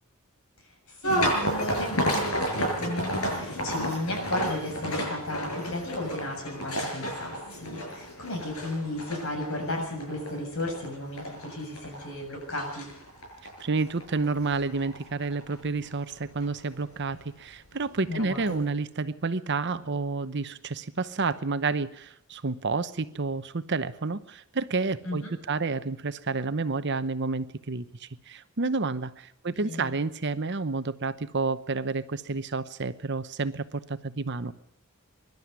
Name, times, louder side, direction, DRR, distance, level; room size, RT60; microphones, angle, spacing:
voice 1, 0.9-12.9 18.1-18.6 25.0-25.3 29.5-29.9, left 1 dB, 60° left, 3 dB, 7.3 m, -34 dB
sound 1, 1.0-16.1 16.4-16.9 17.7-17.8 18.2-18.5, equal, 75° left, 6.8 m, -31 dB
voice 2, 13.6-34.5, right 3 dB, 50° right, 12 dB, 0.9 m, -30 dB
23.0 x 12.0 x 9.6 m, 0.75 s
head